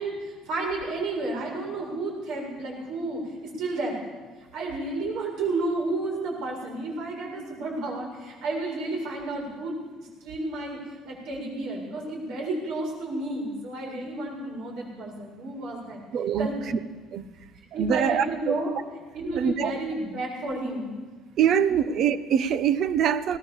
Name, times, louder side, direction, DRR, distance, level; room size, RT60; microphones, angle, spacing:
voice 1, 0.0-4.0 4.5-10.8 11.0-16.0 16.4-16.7 17.7-18.7 19.1-20.9, right 2 dB, 60° right, 0 dB, 7.4 m, -31 dB
voice 2, 16.1-16.5 17.1-17.2 17.8-18.5 19.3-19.7 21.4-23.4, right 8 dB, 45° right, 14 dB, 1.1 m, -24 dB
20.5 x 18.5 x 7.4 m, 1.3 s
cardioid pair, 170°, 0 cm